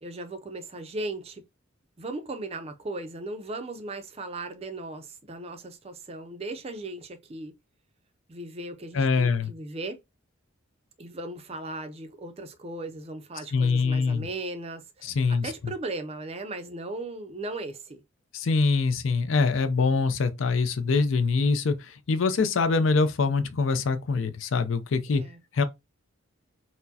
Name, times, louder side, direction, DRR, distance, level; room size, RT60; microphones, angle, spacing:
voice 1, 0.0-1.4 2.0-7.6 8.3-10.0 11.0-18.0 25.1-25.4, right 2 dB, 30° right, 0.4 m, -37 dB
voice 2, 8.9-9.5 13.5-14.3 15.0-15.5 18.3-25.2 25.5-25.6, left 4 dB, 70° left, 0.5 m, -24 dB
4.4 x 2.1 x 2.7 m
head